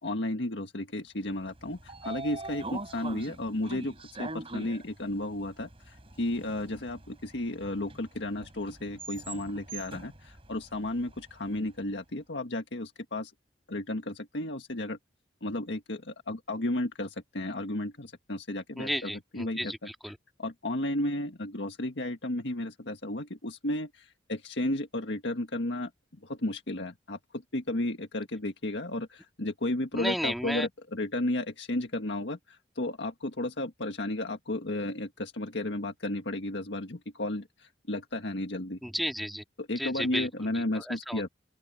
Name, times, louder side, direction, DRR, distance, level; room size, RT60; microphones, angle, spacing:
voice 1, 0.0-13.3 13.7-15.0 15.4-19.7 20.4-25.9 26.2-38.8 39.6-41.3, left 1 dB, 85° left, 1.7 m, -33 dB
Train / Sliding door, 1.4-11.6, right 2 dB, 30° right, 4.4 m, -43 dB
voice 2, 18.8-20.2 29.9-30.7 38.8-39.4 39.8-41.2, equal, ahead, 1.9 m, -33 dB
open air
head